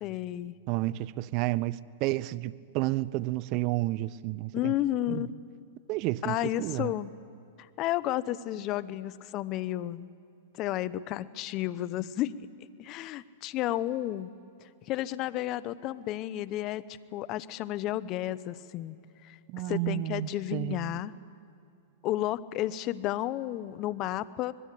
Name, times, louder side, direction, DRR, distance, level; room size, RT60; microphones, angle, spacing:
voice 1, 0.0-0.5 4.5-5.3 6.2-7.1 7.8-10.1 10.6-12.3 12.8-14.3 14.9-16.8 17.1-19.0 19.2-19.4 19.7-21.1 22.0-24.5, left 14 dB, 40° left, 0.9 m, -32 dB
voice 2, 0.7-4.7 5.1-5.3 5.9-6.9 19.5-21.0, right 18 dB, 45° right, 0.7 m, -31 dB
25.0 x 21.0 x 8.5 m
hypercardioid pair, 125°, 0 cm